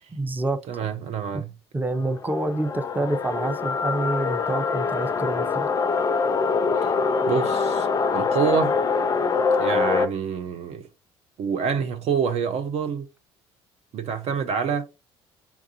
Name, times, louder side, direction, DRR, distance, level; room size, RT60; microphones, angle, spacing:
voice 1, 0.1-0.6 1.7-5.7, right 2 dB, 15° right, 0.7 m, -27 dB
voice 2, 0.7-1.5 6.8-6.9 7.3-7.9 8.1-8.7 9.6-10.8 11.4-13.1 13.9-14.9, right 6 dB, 50° right, 0.6 m, -26 dB
sound 1, 1.9-10.1, left 5 dB, 25° left, 0.5 m, -24 dB
6.9 x 2.4 x 2.7 m
figure-of-eight pair, 55°, 14 cm